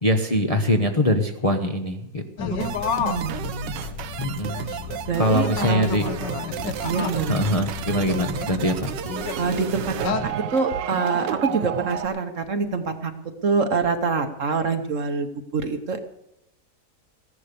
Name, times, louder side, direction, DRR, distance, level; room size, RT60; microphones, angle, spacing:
voice 1, 0.0-2.5 4.2-4.6 5.2-6.1 7.3-8.9, equal, 25° left, 3 dB, 0.8 m, -23 dB
sound 1, 2.4-10.3, left 7 dB, 80° left, 1.6 m, -31 dB
voice 2, 2.6-3.9 5.1-6.1 6.8-7.3 9.3-13.1 13.4-15.3 15.5-16.0, right 4 dB, 50° right, 7 dB, 1.2 m, -26 dB
sound 2, 2.6-12.1, right 10 dB, 85° right, 1.4 m, -32 dB
15.0 x 11.0 x 6.8 m, 0.85 s
omnidirectional pair, 1.9 m